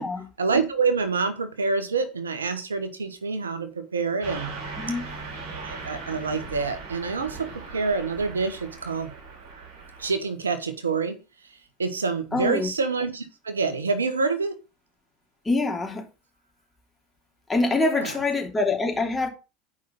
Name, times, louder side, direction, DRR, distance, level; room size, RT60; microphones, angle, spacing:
voice 1, 0.4-4.6 5.5-9.1 10.0-11.2 11.8-14.5 17.8-18.1, right 4 dB, 85° right, 1.2 m, -27 dB
Car passing by / Truck, 4.2-10.1, right 4 dB, 65° right, 5.6 m, -39 dB
voice 2, 12.3-12.7 15.4-16.0 17.5-19.3, left 3 dB, 15° left, 3.1 m, -25 dB
9.4 x 5.5 x 5.4 m
hypercardioid pair, 75°, 0 cm